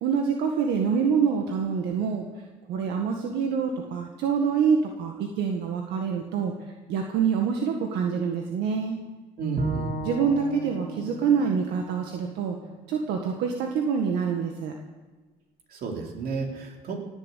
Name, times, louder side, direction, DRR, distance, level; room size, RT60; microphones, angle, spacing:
voice 1, 0.0-2.3 2.7-6.5 6.9-9.0 10.0-12.6 12.9-14.7, right 6 dB, 85° right, 2 dB, 1.8 m, -26 dB
voice 2, 9.4-10.0 15.7-17.0, right 4 dB, 65° right, 1 dB, 3.7 m, -32 dB
Bowed string instrument, 9.6-12.8, right 3 dB, 45° right, 3.7 m, -35 dB
18.0 x 8.3 x 8.5 m, 1.3 s
cardioid pair, 110°, 17 cm